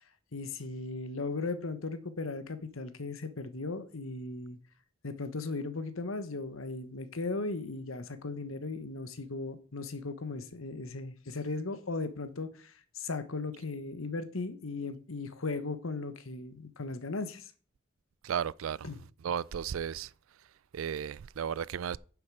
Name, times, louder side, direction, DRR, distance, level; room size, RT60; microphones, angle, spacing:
voice 1, 0.3-4.6 5.0-17.5 18.8-19.0, left 3 dB, 80° left, 1.2 m, -37 dB
voice 2, 18.2-18.9 19.2-20.1 20.7-22.0, right 8 dB, 75° right, 0.4 m, -34 dB
10.0 x 7.1 x 4.8 m
head